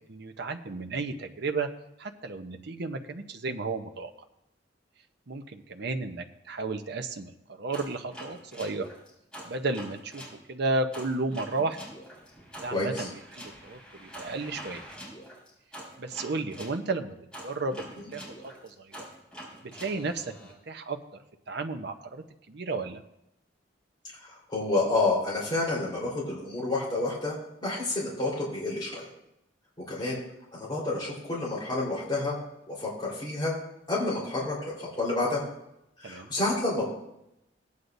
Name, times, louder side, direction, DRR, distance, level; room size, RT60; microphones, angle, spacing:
voice 1, 0.1-1.7 2.0-4.1 5.3-7.3 7.6-8.9 9.4-10.2 10.5-11.8 12.6-14.8 16.0-18.3 18.6-19.0 19.7-21.0 21.5-23.0 36.0-36.3, right 3 dB, 65° right, 6 dB, 0.8 m, -33 dB
sound 1, 7.7-10.4 10.9-16.8 17.3-20.5, right 1 dB, 5° left, 4.8 m, -45 dB
voice 2, 12.7-13.0 24.3-27.4 27.6-29.1 29.9-30.2 30.5-32.3 32.7-33.5 33.9-35.4 36.0-36.9, left 2 dB, 25° left, -6 dB, 4.0 m, -29 dB
17.5 x 9.6 x 2.7 m, 0.85 s
head